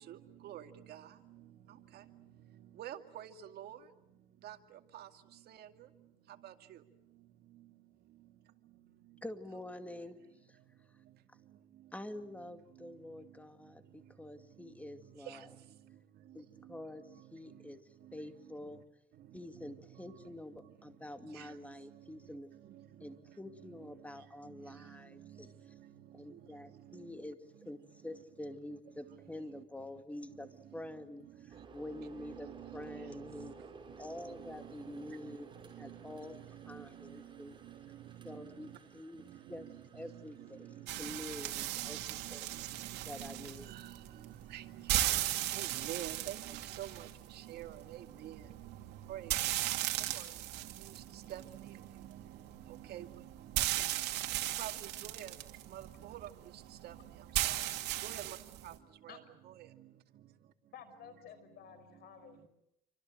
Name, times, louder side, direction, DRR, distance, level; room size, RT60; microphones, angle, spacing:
voice 1, 2.8-3.3 3.6-3.8 4.4-4.5 44.5-44.6 45.6-46.4 46.8-46.9 47.5-47.7 48.2-48.3 49.1-49.2 51.3-51.4 52.9-53.0 54.6-54.7 55.1-55.3 55.7-55.8 56.8-56.9 58.0-58.2, right 12 dB, 70° right, 7 dB, 2.3 m, -42 dB
voice 2, 9.2-10.6 11.9-15.6 16.3-18.8 19.3-22.5 23.0-25.7 26.1-27.4 27.7-33.5 34.0-35.5 35.8-37.6 38.2-42.5 43.1-43.8, left 1 dB, 10° left, 8 dB, 2.3 m, -47 dB
sound 1, 31.5-40.9, right 4 dB, 30° right, 6.0 m, -56 dB
sound 2, 40.9-58.8, right 15 dB, 90° right, 2.7 m, -37 dB
voice 3, 60.7-62.5, left 8 dB, 70° left, 11 dB, 5.8 m, -53 dB
28.0 x 25.5 x 7.8 m, 0.80 s
cardioid pair, 110°, 17 cm